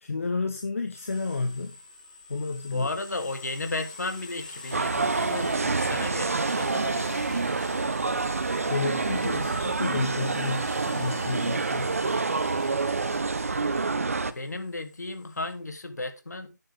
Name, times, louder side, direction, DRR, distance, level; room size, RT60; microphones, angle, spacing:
voice 1, 0.0-1.7 2.3-2.9 8.7-11.9, left 3 dB, 45° left, 1.4 m, -31 dB
sound 1, 0.9-15.5, left 3 dB, 25° left, 2.3 m, -46 dB
voice 2, 2.7-7.9 11.9-12.9 14.3-16.6, left 2 dB, 60° left, 3.3 m, -35 dB
sound 2, 4.7-14.3, right 4 dB, 50° right, 1.1 m, -27 dB
11.0 x 10.0 x 3.7 m
figure-of-eight pair, 175°, 10 cm